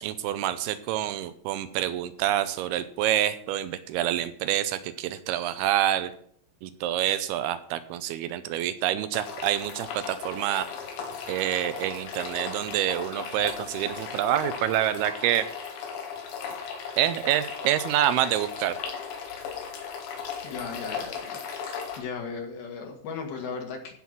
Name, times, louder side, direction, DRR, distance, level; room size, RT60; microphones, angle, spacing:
voice 1, 0.0-6.1 6.6-10.7 11.3-15.5 17.0-18.8, right 12 dB, 80° right, 12 dB, 2.3 m, -27 dB
sound 1, 9.1-22.0, left 6 dB, 80° left, 4.1 m, -37 dB
voice 2, 20.4-21.4 22.0-23.9, left 5 dB, 65° left, 2 dB, 3.3 m, -36 dB
16.0 x 5.7 x 6.1 m, 0.62 s
omnidirectional pair, 5.2 m